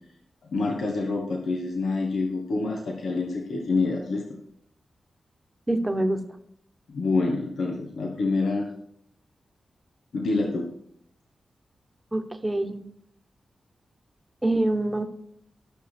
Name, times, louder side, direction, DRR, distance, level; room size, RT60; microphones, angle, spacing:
voice 1, 0.5-4.2 6.9-8.7 10.1-10.7, left 3 dB, 85° left, 0 dB, 1.3 m, -27 dB
voice 2, 5.7-6.2 12.1-12.9 14.4-15.0, right 1 dB, 20° right, 6 dB, 1.3 m, -25 dB
13.0 x 6.0 x 4.5 m, 0.69 s
cardioid pair, 55°, 0 cm